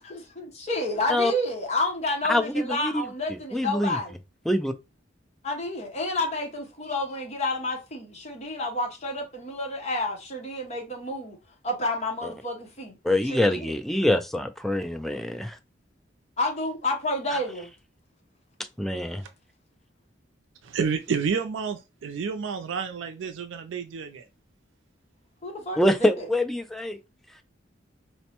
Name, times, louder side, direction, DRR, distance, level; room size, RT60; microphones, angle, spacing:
voice 1, 0.0-4.1 5.4-11.4 11.6-13.0 13.3-13.7 16.4-17.7 25.4-26.2, left 2 dB, 35° left, 1.0 m, -30 dB
voice 2, 2.3-3.0 3.3-4.0 4.5-4.7 12.2-12.3 13.0-15.6 17.3-17.4 18.8-19.2 25.8-27.0, left 1 dB, ahead, 0.3 m, -25 dB
voice 3, 20.7-24.2, right 6 dB, 80° right, 0.4 m, -29 dB
4.2 x 2.1 x 2.9 m
head